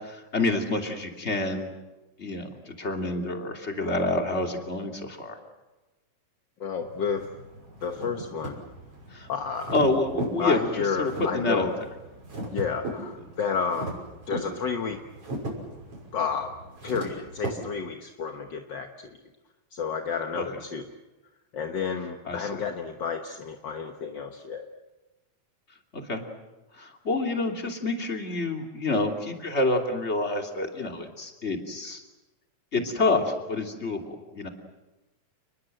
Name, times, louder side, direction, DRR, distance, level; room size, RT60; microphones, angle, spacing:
voice 1, 0.0-1.7 2.2-5.4 9.1-9.3 9.7-11.9 20.3-20.4 22.2-22.6 25.9-26.2 26.8-32.0 32.7-34.5, left 2 dB, 20° left, 3 dB, 2.8 m, -28 dB
voice 2, 6.6-7.3 7.8-8.6 9.3-9.8 10.4-11.7 12.5-13.9 14.3-15.0 16.1-16.5 16.8-18.9 19.7-20.9 21.5-24.7, left 6 dB, 50° left, 5 dB, 1.4 m, -31 dB
sound 1, 6.8-17.5, right 1 dB, 45° right, 7.0 m, -38 dB
30.0 x 21.0 x 7.8 m, 1.1 s
omnidirectional pair, 3.4 m